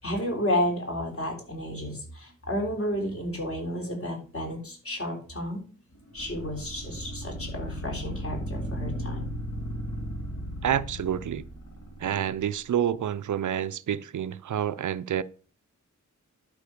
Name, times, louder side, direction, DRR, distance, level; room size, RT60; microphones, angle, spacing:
voice 1, 0.0-5.6 6.1-9.3, equal, 45° left, 3.6 m, -31 dB
sound 1, 6.2-12.3, equal, 70° left, 2.7 m, -35 dB
voice 2, 10.6-11.4 12.0-15.2, right 10 dB, 75° right, 0.5 m, -28 dB
11.5 x 5.2 x 5.1 m
wide cardioid pair, 120°, 30 cm